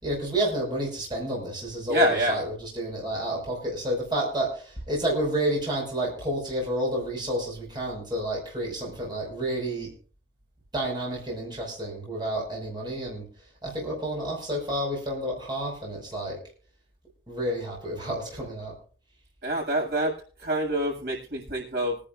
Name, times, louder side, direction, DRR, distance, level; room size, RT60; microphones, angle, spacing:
voice 1, 0.0-9.9 10.7-13.3 13.6-16.4 17.3-18.7, right 1 dB, 25° right, -1 dB, 5.7 m, -30 dB
voice 2, 1.9-2.4 19.4-20.2 20.4-22.1, right 1 dB, 65° right, -2 dB, 7.4 m, -26 dB
25.5 x 10.5 x 2.6 m, 0.42 s
head